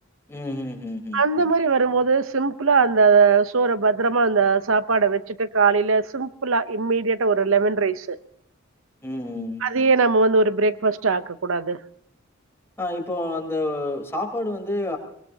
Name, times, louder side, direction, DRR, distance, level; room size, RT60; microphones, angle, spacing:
voice 1, 0.3-1.2 9.0-9.6 12.8-15.0, left 2 dB, 15° left, 0 dB, 3.7 m, -29 dB
voice 2, 1.1-8.2 9.6-11.8, right 4 dB, 85° right, 12 dB, 0.7 m, -20 dB
23.5 x 21.5 x 2.8 m, 0.70 s
head